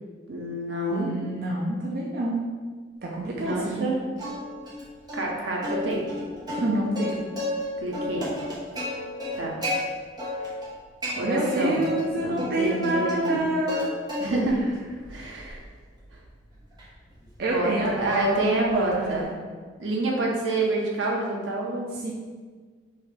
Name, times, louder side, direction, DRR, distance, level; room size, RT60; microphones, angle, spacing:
voice 1, 0.3-1.1 3.4-3.9 5.1-6.0 7.8-8.2 9.3-9.5 11.1-11.8 12.1-13.4 14.2-14.6 15.1-15.6 17.4-17.7 18.0-19.3 19.8-21.9, right 2 dB, 85° right, -2 dB, 0.9 m, -27 dB
voice 2, 0.9-2.4 3.0-3.9 6.5-7.3 11.2-13.9 17.4-19.3 21.9-22.1, right 1 dB, 55° right, -3 dB, 0.5 m, -27 dB
Plucked string instrument, 4.2-4.8 5.1-5.2 5.6-7.6 7.9-9.8 10.2-10.7 11.0-12.0 12.4-13.8 14.1-14.6 15.0-19.2, left 1 dB, 20° right, 1.2 m, -33 dB
5.6 x 2.7 x 3.3 m, 1.5 s
head